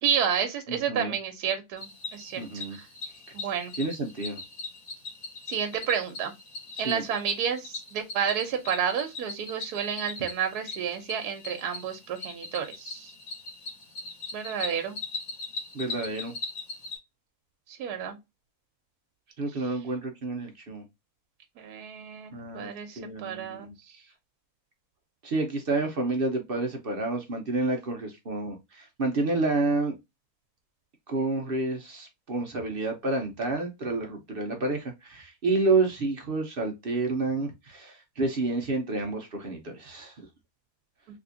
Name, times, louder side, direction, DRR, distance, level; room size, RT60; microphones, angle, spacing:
voice 1, 0.0-2.9 3.3-3.7 5.5-6.3 6.8-13.1 14.3-15.0 17.7-18.2 21.6-23.7, right 8 dB, 80° right, 1.2 m, -30 dB
voice 2, 0.7-1.1 2.4-2.8 3.8-4.4 6.7-7.0 15.7-16.3 19.4-20.8 22.3-22.7 23.0-23.7 25.2-29.9 31.1-40.3, right 3 dB, 45° right, 0.8 m, -29 dB
Cricket, 1.8-17.0, left 3 dB, 60° left, 1.6 m, -40 dB
3.4 x 2.9 x 2.6 m
omnidirectional pair, 1.7 m